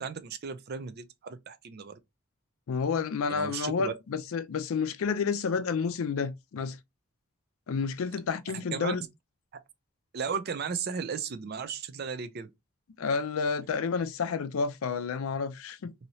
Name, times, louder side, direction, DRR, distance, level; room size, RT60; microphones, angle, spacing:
voice 1, 0.0-2.0 3.3-3.9 8.5-9.0 10.1-12.5, right 6 dB, 45° right, 0.4 m, -35 dB
voice 2, 2.7-6.8 7.7-9.0 13.0-15.9, left 5 dB, 70° left, 0.4 m, -30 dB
3.0 x 2.7 x 2.6 m
head